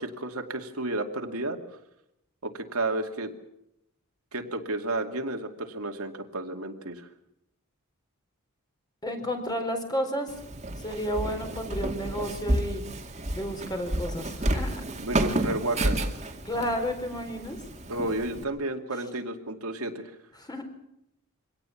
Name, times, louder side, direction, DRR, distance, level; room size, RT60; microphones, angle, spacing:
voice 1, 0.0-1.6 2.4-3.3 4.3-7.1 15.0-16.1 17.9-20.1, right 2 dB, 75° right, 4 dB, 2.4 m, -32 dB
voice 2, 9.0-10.3 10.8-12.8 13.3-14.8 16.4-17.6 20.4-20.6, equal, 20° left, 5 dB, 4.2 m, -31 dB
Walk footsteps, 10.3-18.4, right 1 dB, 30° right, 2.4 m, -31 dB
24.5 x 18.0 x 7.2 m, 0.82 s
head